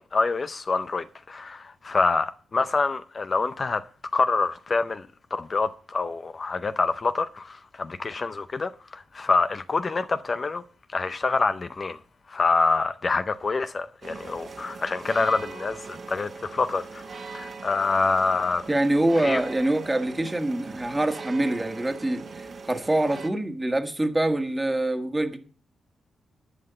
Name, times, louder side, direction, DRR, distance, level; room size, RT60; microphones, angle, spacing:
voice 1, 0.0-3.8 4.1-10.6 10.9-12.0 12.3-18.7 19.2-19.4, left 4 dB, 40° left, 0.6 m, -26 dB
sound 1, 14.0-23.3, right 4 dB, 50° right, 1.5 m, -40 dB
voice 2, 18.7-25.4, right 1 dB, 15° right, 1.6 m, -25 dB
11.5 x 5.7 x 6.9 m
cardioid pair, 85°, 0 cm